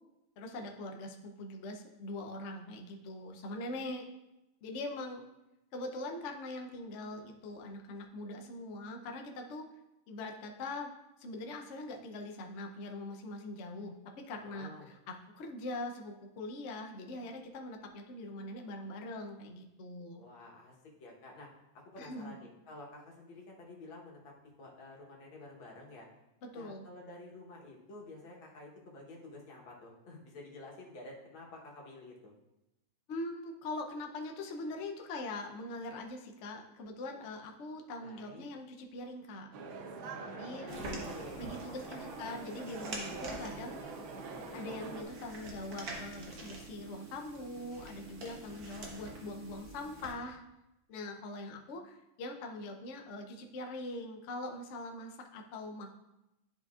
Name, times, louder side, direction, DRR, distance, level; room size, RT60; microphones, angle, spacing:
voice 1, 0.4-4.0 4.6-5.3 5.7-9.7 10.1-10.9 11.2-20.2 22.0-22.3 26.4-26.8 33.1-39.5 40.3-41.0 41.4-43.8 44.5-50.4 50.9-56.0, left 2 dB, 70° left, 3 dB, 0.7 m, -42 dB
voice 2, 14.4-14.9 20.2-21.5 21.7-24.3 24.6-26.1 26.5-32.3 38.0-38.5 40.1-42.2, left 2 dB, 85° left, -2 dB, 2.0 m, -50 dB
sound 1, 39.5-45.0, right 4 dB, 85° right, 1.6 m, -44 dB
sound 2, 40.7-50.1, right 2 dB, 55° right, 1.5 m, -46 dB
10.5 x 5.2 x 2.4 m, 0.94 s
omnidirectional pair, 2.1 m